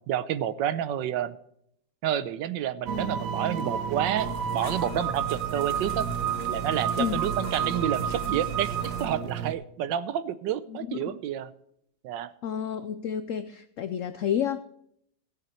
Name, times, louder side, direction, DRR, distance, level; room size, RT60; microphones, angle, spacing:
voice 1, 0.1-1.4 2.0-6.1 6.5-11.5 12.0-12.3, right 10 dB, 80° right, 15 dB, 1.3 m, -29 dB
sound 1, 2.9-9.5, right 8 dB, 60° right, 1.0 m, -31 dB
sound 2, 4.2-9.1, equal, 55° left, 2.8 m, -38 dB
voice 2, 10.7-11.2 12.4-14.6, left 9 dB, 85° left, 12 dB, 0.7 m, -30 dB
17.0 x 8.0 x 4.3 m, 0.71 s
omnidirectional pair, 2.0 m